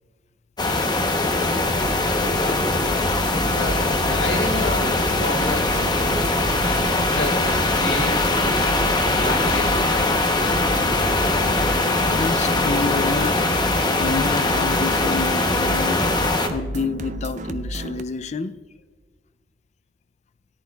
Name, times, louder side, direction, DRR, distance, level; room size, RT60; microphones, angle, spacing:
sound 1, 0.6-16.5, left 2 dB, 25° left, 0.8 m, -21 dB
sound 2, 1.0-18.0, right 1 dB, 75° right, 1.4 m, -36 dB
voice 1, 2.3-2.7 3.5-5.8 6.6-8.7 9.1-10.2, left 2 dB, 85° left, 1.8 m, -31 dB
sound 3, 3.1-18.0, right 2 dB, 45° right, 0.5 m, -32 dB
voice 2, 12.1-13.5 13.9-18.6, left 4 dB, 40° left, 0.4 m, -29 dB
17.5 x 11.0 x 2.3 m
head